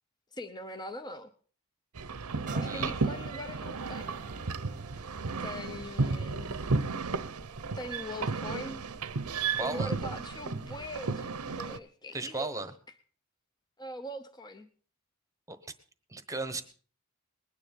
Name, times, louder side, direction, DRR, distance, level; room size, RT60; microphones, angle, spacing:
voice 1, 0.3-1.3 2.5-4.3 5.4-6.6 7.7-8.8 9.6-12.5 13.8-14.7, left 1 dB, 20° left, 7 dB, 0.8 m, -41 dB
sound 1, 1.9-11.8, right 4 dB, 85° right, 0.8 m, -33 dB
sound 2, 2.5-10.1 10.6-10.7, right 6 dB, 35° right, 0.9 m, -51 dB
voice 2, 9.6-9.9 12.1-12.7 15.5-15.6 16.1-16.6, right 3 dB, 15° right, 11 dB, 1.1 m, -35 dB
20.5 x 9.7 x 5.3 m, 0.42 s
head